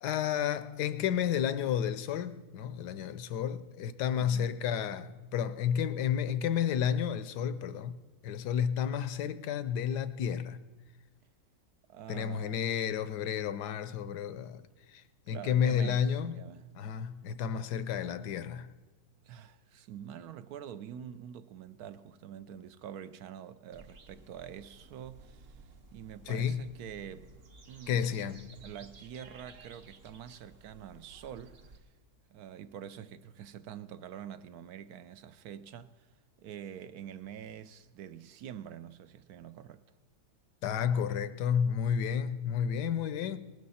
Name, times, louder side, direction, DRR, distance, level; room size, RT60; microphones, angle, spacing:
voice 1, 0.0-8.0 8.2-10.6 12.1-14.6 14.9-16.4 16.7-18.7 26.3-26.7 27.9-28.4 40.6-43.4, left 8 dB, 75° left, 1.2 m, -31 dB
voice 2, 4.2-4.6 11.9-12.6 15.3-16.6 19.2-25.6 25.9-27.3 27.7-28.1 28.6-31.6 32.3-36.1 36.4-39.8, right 9 dB, 70° right, 1.0 m, -46 dB
sound 1, 23.7-31.8, right 3 dB, 45° right, 0.8 m, -55 dB
19.0 x 12.0 x 4.2 m
omnidirectional pair, 1.8 m